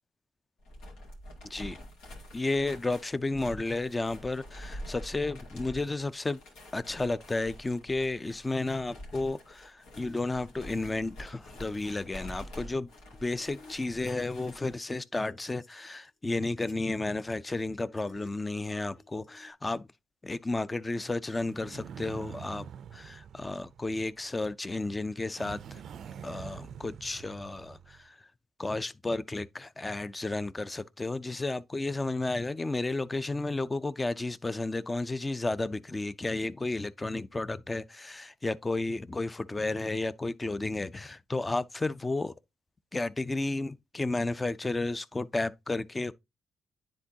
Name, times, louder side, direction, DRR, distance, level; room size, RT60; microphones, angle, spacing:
sound 1, 0.6-14.8, equal, 90° left, 2.3 m, -47 dB
voice 1, 2.3-6.4 6.7-12.9 13.2-19.9 20.2-22.7 22.9-25.8 26.2-28.2 28.6-42.3 42.9-46.1, left 2 dB, 20° left, 0.4 m, -32 dB
sound 2, 9.9-11.9 12.5-14.5 14.8-19.5, left 3 dB, 60° left, 1.6 m, -57 dB
sound 3, 21.4-24.4 25.3-28.1, right 8 dB, 65° right, 0.4 m, -46 dB
9.8 x 3.8 x 2.7 m
cardioid pair, 90°, 0 cm